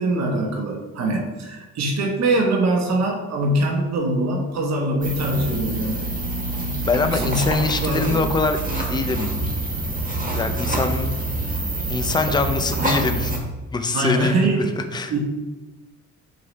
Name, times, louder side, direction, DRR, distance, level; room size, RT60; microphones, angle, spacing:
voice 1, 0.0-6.0 6.6-6.7 7.1-7.4 7.8-8.2 13.9-14.7 15.1-15.2, right 2 dB, 60° right, 0 dB, 1.1 m, -23 dB
sound 1, 5.0-13.4, right 2 dB, 30° right, 1.4 m, -26 dB
voice 2, 6.9-9.3 10.3-11.2 11.9-13.4 13.7-14.6 14.9-15.1, left 4 dB, 15° left, 6 dB, 0.5 m, -23 dB
5.7 x 3.1 x 5.3 m, 1.1 s
cardioid pair, 90°, 30 cm